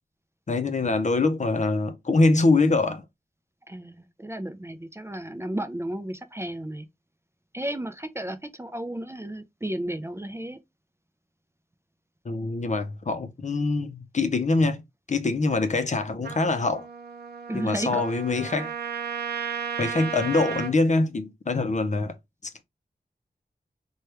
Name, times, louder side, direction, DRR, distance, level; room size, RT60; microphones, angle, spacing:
voice 1, 0.5-3.0 12.3-14.8 15.1-16.9 17.5-18.7 19.8-22.1, left 3 dB, 45° left, 0.6 m, -24 dB
voice 2, 3.7-6.9 7.5-10.6 17.5-18.0 18.3-18.4, right 1 dB, 15° right, 0.4 m, -33 dB
Trumpet, 16.2-20.8, right 7 dB, 80° right, 0.5 m, -34 dB
2.9 x 2.3 x 3.2 m
wide cardioid pair, 65°, 16 cm